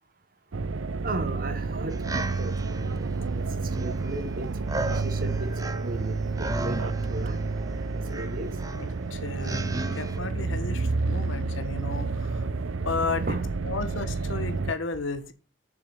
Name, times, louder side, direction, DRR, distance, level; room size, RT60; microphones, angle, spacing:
sound 1, 0.5-14.7, right 3 dB, 80° right, 0.6 m, -30 dB
voice 1, 1.0-3.4 3.8-4.5 5.0-5.5 5.8-7.5 8.1-8.6 13.2-13.5, right 2 dB, 45° right, 1.2 m, -36 dB
sound 2, 1.9-10.2, right 2 dB, 15° right, 0.7 m, -37 dB
voice 2, 8.8-12.5 12.8-13.4 13.6-15.3, left 4 dB, 70° left, 1.3 m, -33 dB
7.0 x 6.9 x 7.0 m
head